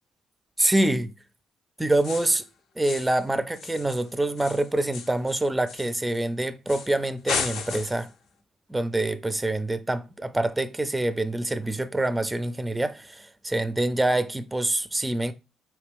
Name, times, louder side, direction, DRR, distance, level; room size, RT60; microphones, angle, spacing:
voice 1, 0.6-1.1 1.8-2.4 2.8-8.1 8.7-15.3, right 1 dB, 10° right, 0.4 m, -26 dB
sound 1, 2.0-2.4 2.8-3.2 3.5-6.2 6.7-7.0 7.3-8.1, left 6 dB, 85° left, 0.7 m, -34 dB
4.1 x 3.1 x 3.4 m
cardioid pair, 90°, 0 cm